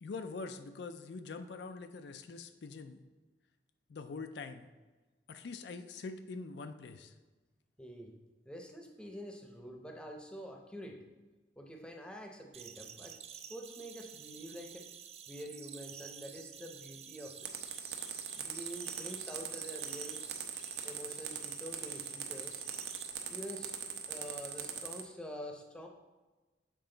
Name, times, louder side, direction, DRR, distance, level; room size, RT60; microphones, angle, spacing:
voice 1, 0.0-3.0 3.9-4.7 5.3-7.1, left 4 dB, 70° left, 8 dB, 0.4 m, -44 dB
voice 2, 7.8-8.1 8.4-11.0 11.6-14.8 15.3-17.4 18.3-20.2 20.8-22.6 23.3-25.9, equal, 5° left, 2 dB, 0.7 m, -47 dB
sound 1, 12.5-23.1, right 8 dB, 35° right, 0.4 m, -50 dB
sound 2, 17.5-25.0, right 8 dB, 70° right, 0.8 m, -40 dB
7.7 x 4.7 x 3.8 m, 1.2 s
head